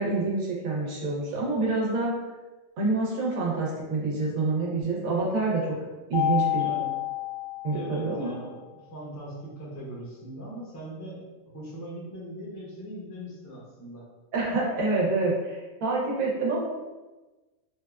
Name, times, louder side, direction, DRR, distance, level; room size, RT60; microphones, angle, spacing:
voice 1, 0.0-2.1 2.8-5.6 6.1-6.7 7.6-8.3 14.3-16.6, right 3 dB, 90° right, -3 dB, 1.2 m, -27 dB
Mallet percussion, 6.1-8.4, left 15 dB, 75° left, 1.1 m, -29 dB
voice 2, 6.6-7.0 7.7-11.3 11.5-14.0, right 1 dB, 20° left, -5 dB, 0.4 m, -40 dB
3.5 x 2.2 x 2.3 m, 1.2 s
omnidirectional pair, 1.4 m